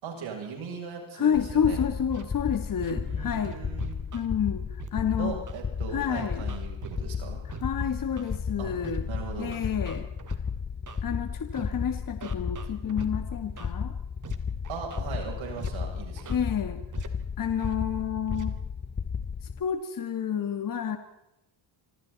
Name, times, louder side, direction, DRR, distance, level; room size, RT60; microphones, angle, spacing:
voice 1, 0.0-1.8 2.9-4.0 5.2-7.4 8.6-8.7 9.1-9.6 14.7-16.4, right 6 dB, 75° right, 1 dB, 7.8 m, -39 dB
voice 2, 1.1-3.6 4.1-5.3 5.9-6.5 7.5-9.1 9.4-10.1 11.0-13.9 16.3-16.8 17.4-18.6 19.6-21.0, left 8 dB, 45° left, 7 dB, 2.0 m, -29 dB
sound 1, 1.3-19.6, left 6 dB, 20° left, 0.7 m, -34 dB
Scratching (performance technique), 2.1-2.3 2.8-2.9 3.4-4.3 4.8-4.9 5.5-5.6 6.1-7.0 7.5-7.6 8.2-8.4 8.8-9.0 9.5-10.4 10.9-11.0 11.5-11.7 12.2-13.1 13.6-13.7 14.2-14.4 14.6-15.0 15.6-15.7 16.2-16.4 16.9-17.1 17.6-17.7 18.3-18.4, right 6 dB, 40° right, 2.7 m, -41 dB
26.5 x 26.0 x 4.2 m, 0.88 s
cardioid pair, 135°, 47 cm